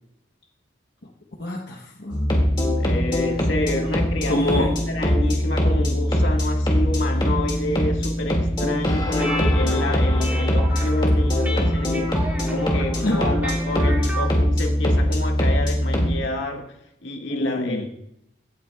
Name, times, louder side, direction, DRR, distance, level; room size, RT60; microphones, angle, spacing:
voice 1, 1.4-2.5 4.3-4.7 8.6-8.7 13.0-13.3 17.3-17.8, left 1 dB, 60° left, -1 dB, 1.0 m, -26 dB
sound 1, 2.1-16.2, equal, 25° left, 2.1 m, -22 dB
voice 2, 2.8-16.7 17.0-17.9, left 2 dB, 80° left, 1 dB, 1.8 m, -29 dB
sound 2, 9.1-14.3, right 1 dB, 10° right, 1.7 m, -33 dB
16.5 x 9.3 x 2.3 m, 0.80 s
head